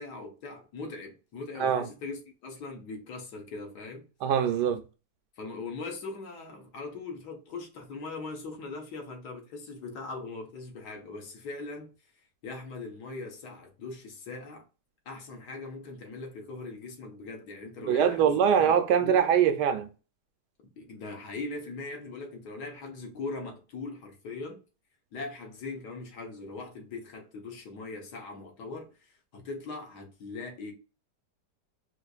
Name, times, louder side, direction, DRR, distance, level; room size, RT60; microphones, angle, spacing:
voice 1, 0.0-4.1 5.4-11.9 12.4-14.6 15.1-18.7 19.0-19.2 20.8-24.6 25.1-30.7, left 3 dB, 70° left, 1.5 m, -40 dB
voice 2, 4.2-4.8 17.9-19.9, right 8 dB, 80° right, 1.1 m, -23 dB
4.4 x 2.5 x 2.3 m
omnidirectional pair, 1.8 m